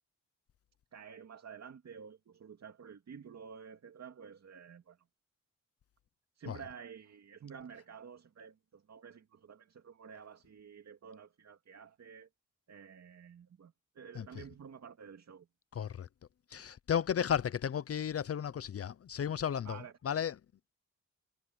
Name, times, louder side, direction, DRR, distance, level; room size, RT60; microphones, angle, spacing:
voice 1, 0.9-5.0 6.3-12.3 12.7-15.5 19.6-20.2, right 7 dB, 65° right, 2.4 m, -51 dB
voice 2, 15.7-16.1 16.5-20.4, left 8 dB, 55° left, 0.6 m, -34 dB
wide cardioid pair, 105°, 29 cm